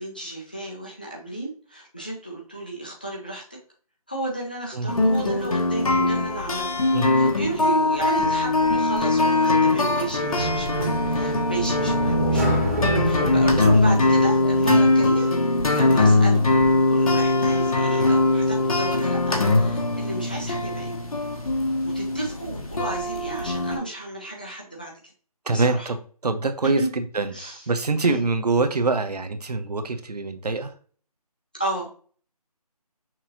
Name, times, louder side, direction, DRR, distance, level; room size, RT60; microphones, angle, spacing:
voice 1, 0.0-3.6 4.1-6.7 7.1-12.6 13.0-15.3 15.7-16.6 16.9-20.9 21.8-24.9 25.5-25.9 26.8-26.9 27.3-27.7 28.0-28.2 31.5-31.9, right 2 dB, 15° left, -3 dB, 0.4 m, -33 dB
sound 1, 4.9-23.8, left 2 dB, 65° left, 1.1 m, -21 dB
sound 2, 10.4-15.3, equal, 25° right, 0.9 m, -27 dB
voice 2, 25.5-30.7, right 3 dB, 80° right, 9 dB, 0.8 m, -25 dB
5.9 x 2.8 x 2.8 m, 0.42 s
figure-of-eight pair, 165°, 20 cm